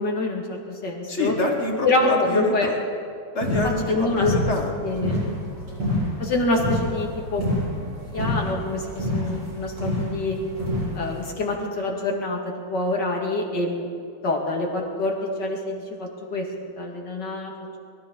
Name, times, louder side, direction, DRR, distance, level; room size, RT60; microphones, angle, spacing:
voice 1, 0.0-1.3 1.8-2.7 3.9-4.3 4.8-5.2 6.2-7.4 8.1-10.4 10.9-13.9 14.2-16.5 16.7-17.5, left 2 dB, 75° left, 0 dB, 2.6 m, -26 dB
voice 2, 1.1-2.7 3.3-4.8, left 2 dB, 40° left, 1 dB, 1.9 m, -25 dB
sound 1, 3.4-11.3, left 1 dB, 85° right, 4.4 m, -28 dB
22.5 x 13.5 x 4.0 m, 2.4 s
omnidirectional pair, 1.9 m